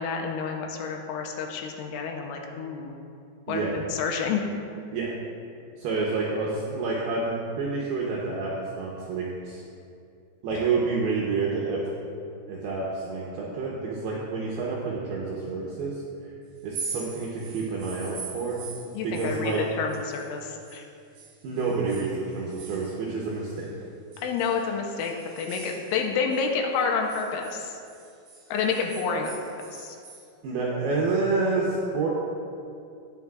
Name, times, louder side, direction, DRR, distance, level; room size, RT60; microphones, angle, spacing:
voice 1, 0.0-2.9 3.5-4.4 18.9-20.8 24.2-27.8 28.5-29.4 29.7-30.0, left 5 dB, 85° left, 2 dB, 3.1 m, -29 dB
voice 2, 5.8-9.6 10.4-11.8 12.5-16.0 16.6-18.6 19.0-19.6 21.4-23.7 30.4-32.1, right 4 dB, 80° right, -4 dB, 2.3 m, -28 dB
sound 1, 16.6-20.8 21.1-23.7 24.1-26.5 26.8-30.3, right 5 dB, 55° right, 2.5 m, -42 dB
19.0 x 6.6 x 2.4 m, 2.5 s
omnidirectional pair, 5.7 m